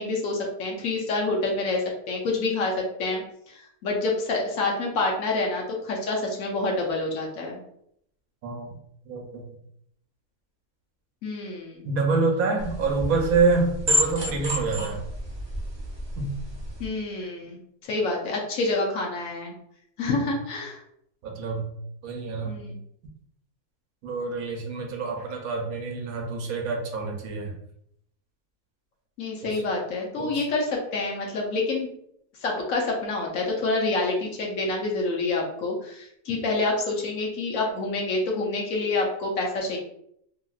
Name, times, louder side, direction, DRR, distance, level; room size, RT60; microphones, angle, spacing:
voice 1, 0.0-7.6 11.2-11.9 16.8-19.5 20.0-20.8 22.4-22.8 29.2-31.9 32.4-39.8, left 2 dB, 65° left, -1 dB, 1.0 m, -27 dB
voice 2, 8.4-8.8 9.1-9.4 11.8-15.0 16.2-16.3 21.2-21.7 22.0-22.6 24.0-27.5 29.4-29.6 30.2-30.5, right 4 dB, 75° right, 2 dB, 1.0 m, -27 dB
sound 1, 12.6-16.9, equal, 45° right, 0.3 m, -30 dB
2.8 x 2.8 x 2.3 m, 0.73 s
omnidirectional pair, 1.6 m